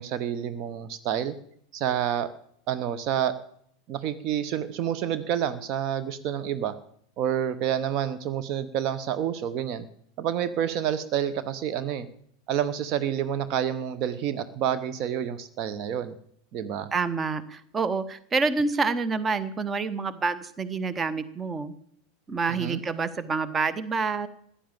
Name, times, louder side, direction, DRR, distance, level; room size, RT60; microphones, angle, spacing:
voice 1, 0.0-1.4 1.7-2.3 2.7-3.4 3.9-6.7 7.2-9.8 10.2-12.1 12.5-16.1 16.5-16.9 22.6-22.8, right 9 dB, 45° right, 12 dB, 1.0 m, -28 dB
voice 2, 16.9-21.7 22.3-24.3, right 4 dB, 20° right, 15 dB, 1.1 m, -27 dB
15.5 x 10.0 x 7.4 m, 0.66 s
figure-of-eight pair, 85°, 0 cm